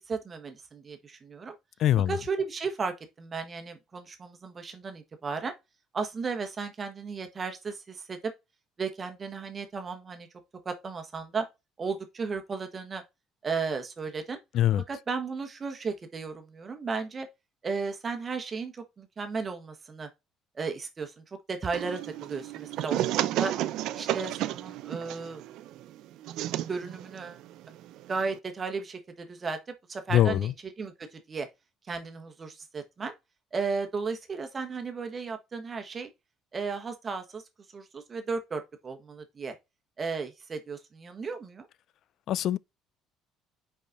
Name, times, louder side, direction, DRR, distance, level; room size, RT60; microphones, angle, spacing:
voice 1, 0.0-1.6 2.1-5.5 5.9-8.3 8.8-10.3 10.6-11.5 11.8-13.0 13.4-14.4 14.9-17.3 17.6-20.1 20.5-23.5 23.9-25.4 26.7-27.4 28.1-29.6 29.9-30.5 30.8-31.5 31.9-33.1 33.5-36.1 36.5-37.4 37.7-39.5 40.0-41.7, right 4 dB, 25° right, 1.2 m, -34 dB
voice 2, 1.8-2.2 14.5-14.8 30.1-30.5 42.3-42.6, left 12 dB, 55° left, 0.3 m, -23 dB
sound 1, 21.7-28.4, right 13 dB, 70° right, 0.5 m, -33 dB
5.3 x 4.9 x 3.8 m
cardioid pair, 135°, 0 cm